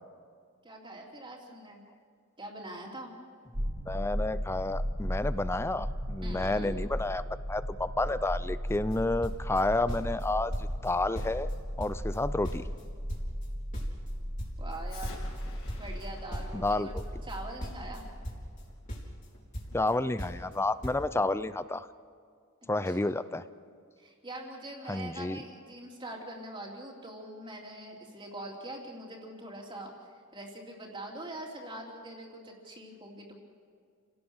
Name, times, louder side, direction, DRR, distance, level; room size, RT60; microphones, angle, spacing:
voice 1, 0.6-1.8 2.4-3.1 6.2-6.8 14.6-15.2 15.8-16.9 17.2-18.1 22.9-23.1 24.0-30.1 30.3-33.4, right 1 dB, 25° right, 0 dB, 3.4 m, -43 dB
sound 1, 3.5-19.3, equal, 50° right, 3.4 m, -36 dB
voice 2, 3.9-7.2 7.5-11.5 11.8-12.7 16.5-16.9 19.7-21.9 22.7-23.4 24.9-25.4, left 2 dB, 10° left, 14 dB, 0.5 m, -30 dB
sound 2, 8.7-9.0 9.2-10.2 10.5-10.9 11.1-12.8 13.1-16.0 16.3-18.6 18.9-19.9 20.2-20.6 20.8-21.0, equal, 35° left, 4.3 m, -40 dB
Explosion, 14.9-20.0, left 2 dB, 65° left, 5.5 m, -52 dB
29.5 x 17.5 x 6.4 m, 2.2 s
head